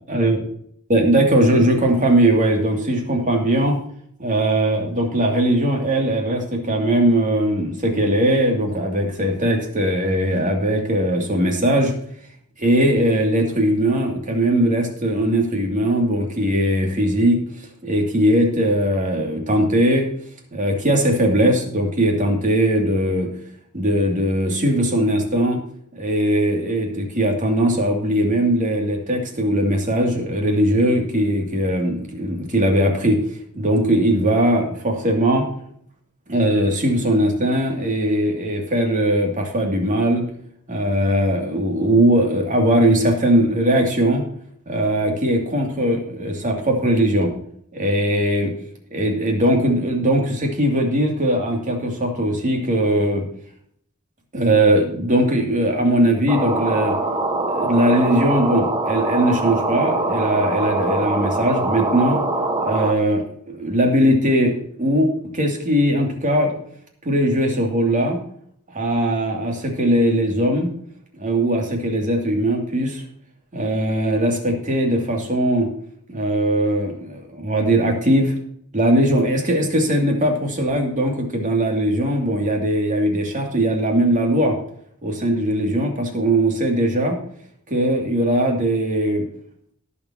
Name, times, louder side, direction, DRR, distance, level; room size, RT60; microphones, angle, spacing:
voice 1, 0.0-0.4 0.9-3.8 4.2-11.9 12.6-17.4 17.8-20.1 20.5-23.3 23.7-25.6 25.9-33.2 33.5-35.5 36.3-40.3 40.7-44.2 44.7-47.3 47.7-48.5 48.9-53.3 54.3-57.0 57.5-62.2 62.6-66.5 67.0-68.2 68.7-70.7 71.2-73.0 73.5-75.7 76.1-78.4 78.7-84.6 85.0-87.2 87.7-89.2, right 1 dB, 40° right, 2 dB, 2.6 m, -20 dB
sound 1, 56.3-62.9, right 2 dB, 20° right, 1.2 m, -23 dB
18.0 x 7.1 x 2.9 m, 0.66 s
head